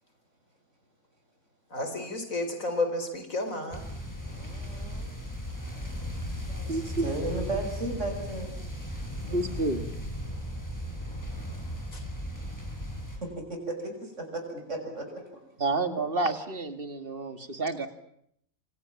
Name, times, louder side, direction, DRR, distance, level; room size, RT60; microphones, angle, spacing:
voice 1, 1.7-3.8, left 2 dB, 75° left, 7 dB, 5.2 m, -31 dB
sound 1, 3.7-13.2, equal, 15° left, 7.3 m, -36 dB
voice 2, 4.2-5.2 5.6-5.8 6.5-8.5 13.2-15.1, right 2 dB, 60° right, 3 dB, 6.9 m, -35 dB
voice 3, 6.7-7.0 9.3-9.9 15.6-17.9, right 2 dB, 45° right, 9 dB, 2.6 m, -29 dB
28.0 x 28.0 x 7.5 m, 0.71 s
omnidirectional pair, 1.4 m